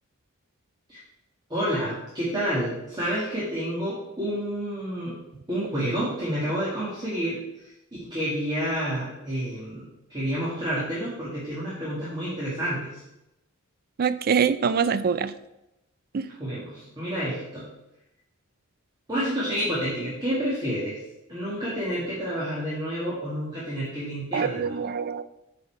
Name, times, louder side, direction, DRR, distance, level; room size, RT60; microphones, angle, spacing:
voice 1, 1.5-5.2 5.5-7.7 8.1-13.0 16.4-17.7 19.1-21.0 21.3-24.8, equal, 20° right, -8 dB, 1.9 m, -29 dB
voice 2, 14.0-15.3 16.1-16.3 24.3-25.2, right 6 dB, 45° right, 14 dB, 0.4 m, -24 dB
8.7 x 4.2 x 4.6 m, 0.90 s
head